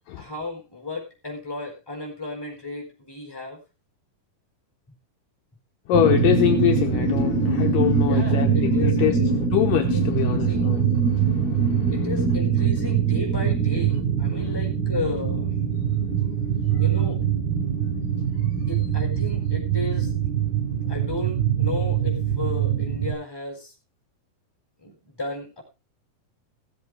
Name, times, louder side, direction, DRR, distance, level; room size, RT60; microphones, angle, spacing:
voice 1, 0.1-3.6 8.1-9.3 9.9-10.8 11.9-15.5 16.8-17.2 18.7-20.3 20.9-23.7 24.8-25.6, left 2 dB, 5° left, 4.3 m, -34 dB
voice 2, 5.9-12.1 14.4-14.6 15.7-16.8, left 12 dB, 70° left, 2.4 m, -25 dB
sound 1, 5.9-23.1, right 6 dB, 85° right, 6.8 m, -23 dB
16.5 x 7.8 x 4.8 m
omnidirectional pair, 4.3 m